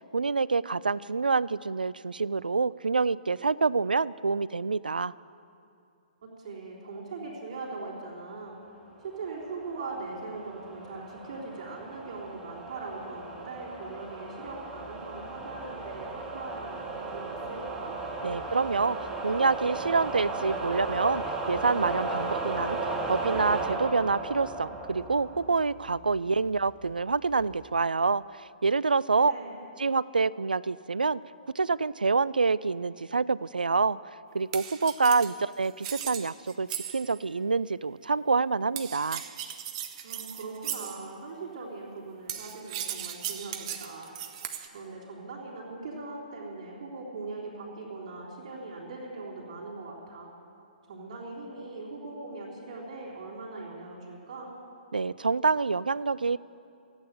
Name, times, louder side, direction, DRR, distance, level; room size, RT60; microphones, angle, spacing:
voice 1, 0.1-5.1 18.2-22.8 23.1-28.2 28.6-29.3 29.8-31.2 31.6-34.0 34.3-39.2 54.9-56.4, right 4 dB, 75° right, 20 dB, 0.3 m, -27 dB
voice 2, 6.2-8.6 9.0-18.0 29.2-29.5 40.0-44.1 44.7-50.3 50.9-54.5, right 3 dB, 50° right, -5 dB, 3.8 m, -40 dB
sound 1, 9.4-25.9, right 3 dB, 15° right, 1.5 m, -35 dB
sound 2, 14.5-27.7, left 4 dB, 30° left, 1.3 m, -55 dB
sound 3, 34.5-37.2 38.8-41.1 42.3-44.7, right 10 dB, 35° right, 1.0 m, -37 dB
15.5 x 8.9 x 9.0 m, 2.5 s
figure-of-eight pair, 120°, 5 cm